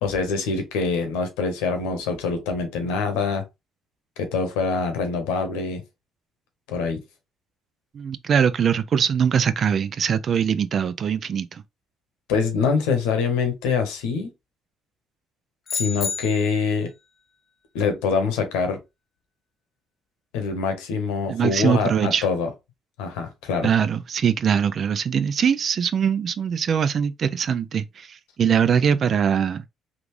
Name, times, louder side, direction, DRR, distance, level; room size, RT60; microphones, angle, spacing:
voice 1, 0.0-3.4 4.2-5.8 6.7-7.0 12.3-14.3 15.7-16.9 17.7-18.8 20.3-22.5 23.0-23.7, left 5 dB, 80° left, 0.9 m, -24 dB
voice 2, 7.9-11.6 21.3-22.3 23.6-29.6, right 7 dB, 55° right, 0.4 m, -22 dB
sound 1, 15.7-16.8, left 6 dB, 55° left, 0.4 m, -30 dB
3.6 x 2.4 x 3.0 m
hypercardioid pair, 55°, 0 cm